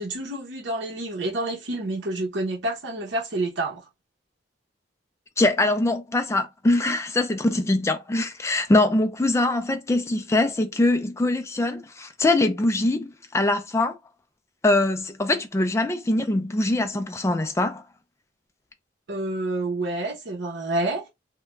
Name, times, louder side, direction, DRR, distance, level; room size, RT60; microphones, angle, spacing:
voice 1, 0.0-3.8 19.1-21.0, right 2 dB, 75° right, 0.8 m, -28 dB
voice 2, 5.4-14.0 14.6-17.8, left 2 dB, 15° left, 0.3 m, -23 dB
2.3 x 2.2 x 3.1 m
head